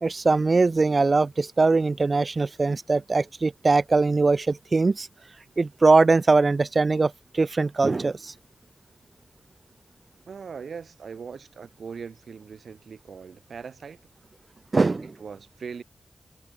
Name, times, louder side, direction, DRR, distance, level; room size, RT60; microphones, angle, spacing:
voice 1, 0.0-5.1 5.6-8.3 14.7-15.1, right 3 dB, 55° right, 1.3 m, -21 dB
voice 2, 10.3-14.0 15.2-15.8, right 6 dB, 85° right, 5.7 m, -40 dB
cardioid pair, 45°, 0 cm